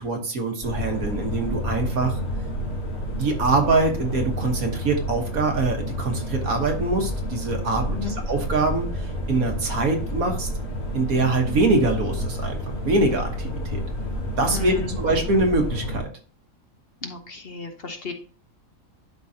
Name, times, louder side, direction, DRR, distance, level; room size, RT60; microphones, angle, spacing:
voice 1, 0.0-2.2 3.2-8.8 9.3-10.5 10.9-12.6 12.8-13.8 14.4-16.1, right 3 dB, 85° right, 3 dB, 1.8 m, -23 dB
sound 1, 0.6-16.0, equal, 70° left, 2.5 m, -30 dB
voice 2, 14.5-15.0 17.0-18.1, left 4 dB, 45° left, 5 dB, 1.2 m, -34 dB
11.5 x 4.0 x 2.8 m, 0.39 s
omnidirectional pair, 1.5 m